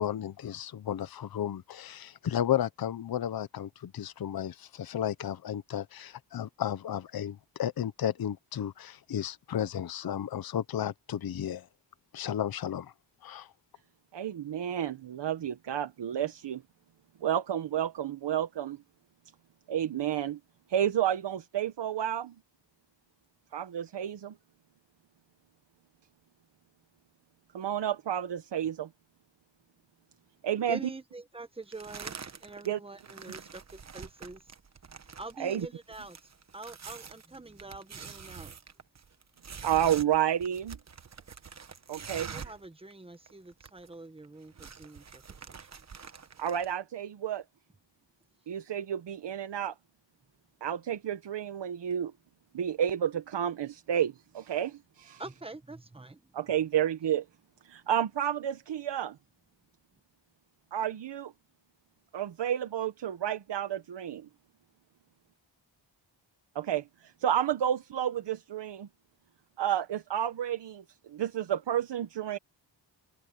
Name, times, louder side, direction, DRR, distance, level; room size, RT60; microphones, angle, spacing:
voice 1, 0.0-11.7 12.1-12.9 13.2-13.5, left 10 dB, 50° left, 0.8 m, -33 dB
voice 2, 14.1-16.6 17.2-18.8 19.7-20.4 20.7-22.3 23.5-24.3 27.5-28.9 30.4-30.8 32.7-32.8 35.4-35.7 39.6-40.8 41.9-42.3 46.4-47.4 48.5-49.7 50.6-52.1 52.5-55.2 56.3-57.2 57.6-59.2 60.7-61.3 62.1-64.3 66.5-68.9 69.6-72.4, right 10 dB, 70° right, 1.0 m, -31 dB
voice 3, 30.7-32.1 32.4-34.5 35.2-38.5 42.1-45.7 55.2-56.3, right 2 dB, 10° right, 1.3 m, -45 dB
sound 1, 31.7-32.7 33.0-42.7 42.9-43.0 43.3-43.9 44.2-46.7, right 6 dB, 35° right, 1.1 m, -46 dB
wide cardioid pair, 170°, 45 cm